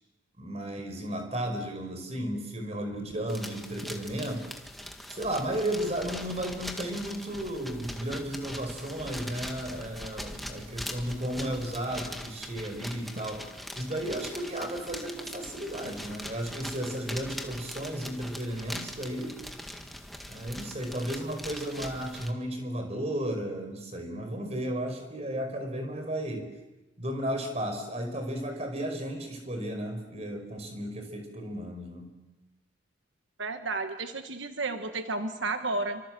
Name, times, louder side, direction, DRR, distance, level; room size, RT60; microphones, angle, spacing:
voice 1, 0.4-4.6 5.1-13.5 13.7-19.4 20.3-26.5 27.0-32.1, right 1 dB, 35° right, 5 dB, 5.0 m, -34 dB
sound 1, 3.3-22.3, equal, ahead, 1.8 m, -41 dB
voice 2, 33.4-36.0, right 3 dB, 80° right, 7 dB, 1.4 m, -32 dB
29.0 x 25.0 x 7.8 m, 1.0 s
head